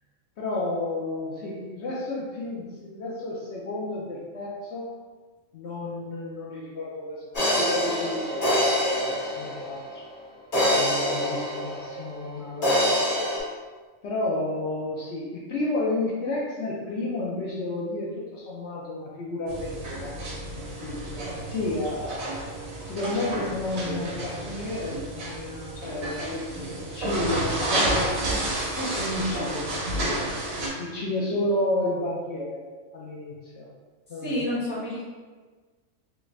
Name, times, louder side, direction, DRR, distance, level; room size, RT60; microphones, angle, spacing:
voice 1, 0.4-4.9 5.5-8.7 9.0-10.0 10.6-13.1 14.0-20.1 20.5-22.5 22.8-30.3 30.8-32.6 32.9-33.7 34.1-34.6, left 2 dB, 65° left, -5 dB, 0.8 m, -31 dB
sound 1, 7.3-9.9 10.5-12.3 12.6-13.4, left 1 dB, 40° left, 1.3 m, -25 dB
sound 2, 19.5-30.7, right 1 dB, 90° right, 1.3 m, -31 dB
voice 2, 34.2-35.0, left 1 dB, 10° right, -9 dB, 0.7 m, -29 dB
3.2 x 2.4 x 3.1 m, 1.4 s
omnidirectional pair, 1.4 m